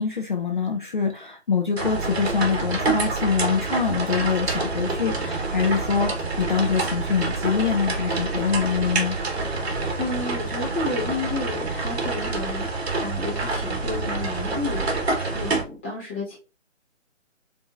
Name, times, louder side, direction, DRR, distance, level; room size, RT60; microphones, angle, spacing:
voice 1, 0.0-9.1, left 6 dB, 40° left, 2 dB, 0.5 m, -24 dB
sound 1, 1.8-15.6, right 3 dB, 55° right, 1.3 m, -27 dB
voice 2, 10.0-12.7 13.0-14.9 15.3-16.4, left 3 dB, 10° left, -6 dB, 0.8 m, -31 dB
7.0 x 2.6 x 2.4 m, 0.33 s
figure-of-eight pair, 160°, 38 cm